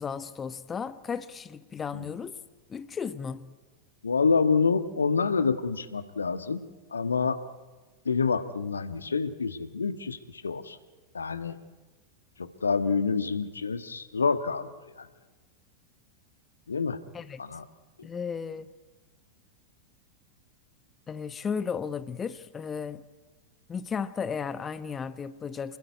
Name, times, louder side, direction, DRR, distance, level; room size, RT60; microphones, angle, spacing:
voice 1, 0.0-2.4 2.7-3.4 17.1-17.4 18.0-18.6 21.1-23.0 23.7-25.8, left 6 dB, 20° left, 14 dB, 1.1 m, -34 dB
voice 2, 4.0-6.6 6.9-7.4 8.0-10.8 11.1-11.6 12.4-14.7 15.0-15.1 16.7-17.0 17.4-17.6, left 5 dB, 75° left, 11 dB, 1.4 m, -27 dB
28.0 x 20.5 x 9.6 m, 1.3 s
figure-of-eight pair, 90°, 0 cm